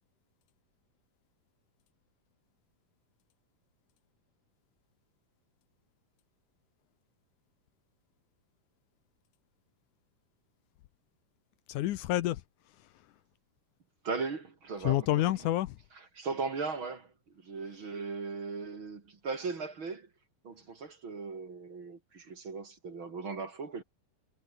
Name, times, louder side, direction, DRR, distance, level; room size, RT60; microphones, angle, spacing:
voice 1, 11.7-13.1 14.8-15.8 17.6-17.8, left 14 dB, 75° left, 2.3 m, -30 dB
voice 2, 14.0-15.0 16.2-17.1 17.4-20.1 20.4-23.8, right 4 dB, 40° right, 3.4 m, -37 dB
omnidirectional pair, 3.7 m